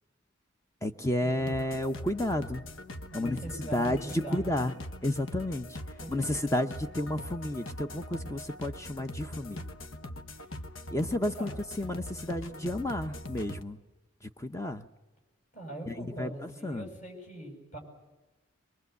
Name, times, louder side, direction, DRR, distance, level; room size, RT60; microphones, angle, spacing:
voice 1, 0.8-2.6 3.1-4.7 5.0-5.8 6.1-9.6 10.9-11.5 11.8-13.8 14.4-14.9 15.9-16.9, left 1 dB, 15° left, 8 dB, 0.7 m, -31 dB
sound 1, 1.4-13.6, left 1 dB, 80° left, 1.3 m, -42 dB
voice 2, 3.1-4.7 6.0-6.3 9.3-9.7 10.3-10.4 11.3-11.6 15.5-17.8, right 1 dB, 35° left, 3 dB, 7.7 m, -43 dB
23.5 x 23.0 x 8.2 m, 1.1 s
head